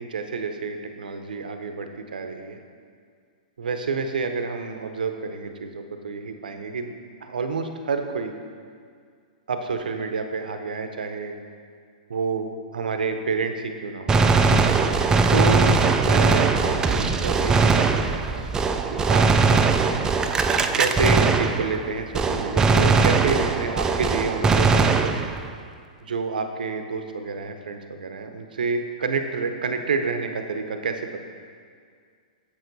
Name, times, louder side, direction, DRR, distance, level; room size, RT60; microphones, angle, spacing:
voice 1, 0.0-2.6 3.6-6.9 7.2-8.3 9.5-11.3 12.1-14.2 15.3-18.5 18.9-19.3 20.8-25.2 26.0-31.2, right 4 dB, 75° right, 6 dB, 0.7 m, -29 dB
Gunshot gunfire, 14.1-21.9 22.1-25.5, right 4 dB, 15° right, 0.4 m, -20 dB
7.6 x 6.6 x 4.0 m, 2.1 s
hypercardioid pair, 120°, 5 cm